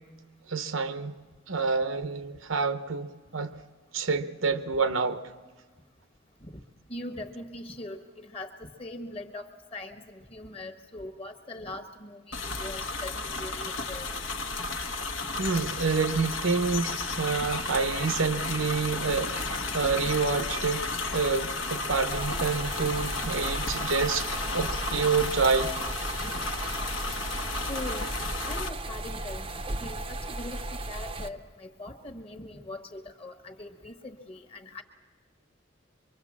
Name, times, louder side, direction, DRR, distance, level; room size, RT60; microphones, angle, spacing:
voice 1, 0.5-1.2 1.5-3.5 3.9-5.2 15.4-24.3 24.5-25.7, right 4 dB, 75° right, 0.9 m, -28 dB
voice 2, 6.9-14.1 15.4-15.5 27.7-28.1 28.4-29.5 29.8-34.8, left 2 dB, 30° left, 1.3 m, -41 dB
sound 1, 12.3-28.7, left 3 dB, 70° left, 1.2 m, -33 dB
sound 2, 22.1-31.3, right 2 dB, 25° right, 0.7 m, -36 dB
24.5 x 24.0 x 7.3 m
head